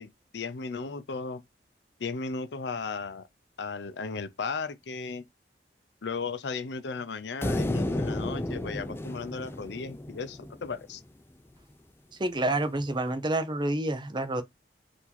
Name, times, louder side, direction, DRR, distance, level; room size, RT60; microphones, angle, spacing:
voice 1, 0.0-1.4 2.0-3.3 3.6-5.2 6.0-11.0, left 4 dB, 70° left, 0.6 m, -35 dB
sound 1, 7.4-10.8, left 1 dB, 15° left, 0.4 m, -32 dB
voice 2, 12.2-14.4, right 2 dB, 25° right, 0.6 m, -28 dB
4.5 x 2.8 x 4.1 m
head